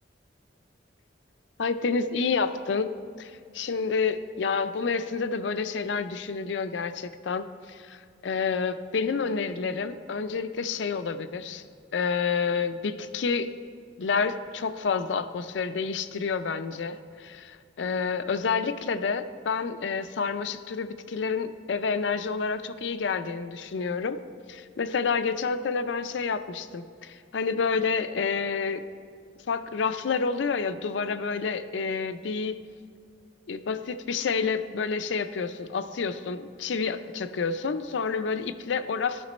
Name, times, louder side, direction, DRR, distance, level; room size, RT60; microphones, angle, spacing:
voice 1, 1.6-2.9 3.2-8.0 8.2-11.6 11.9-13.5 14.0-24.2 24.5-28.8 29.5-32.6 33.5-39.3, left 5 dB, 75° left, 11 dB, 0.5 m, -29 dB
12.5 x 5.9 x 4.2 m, 2.2 s
head